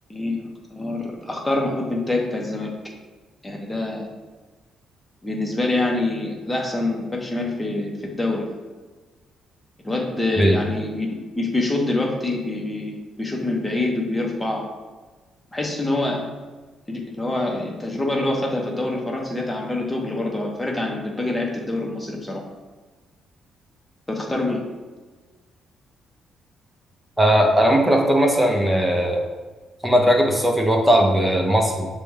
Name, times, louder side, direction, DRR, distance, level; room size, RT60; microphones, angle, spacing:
voice 1, 0.1-2.7 3.4-4.1 5.2-8.5 9.8-11.1 11.3-14.7 15.5-16.2 16.9-22.4 24.1-24.6, left 2 dB, 15° left, 0 dB, 1.0 m, -25 dB
voice 2, 27.2-29.2 29.8-31.9, equal, 10° right, 1 dB, 0.8 m, -18 dB
6.7 x 2.3 x 3.3 m, 1.3 s
cardioid pair, 90°, 0 cm